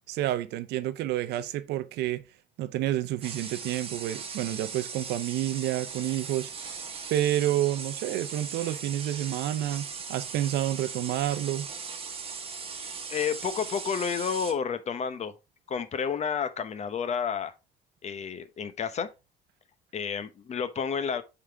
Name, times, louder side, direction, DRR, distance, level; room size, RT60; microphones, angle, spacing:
voice 1, 0.1-2.2 2.6-6.5 7.1-11.7, right 13 dB, 80° right, 0.6 m, -29 dB
sound 1, 3.2-14.5, right 5 dB, 35° right, 1.2 m, -39 dB
voice 2, 13.1-15.3 15.7-17.5 18.0-19.1 19.9-21.2, left 7 dB, 40° left, 0.8 m, -30 dB
7.2 x 3.9 x 3.4 m
cardioid pair, 110°, 17 cm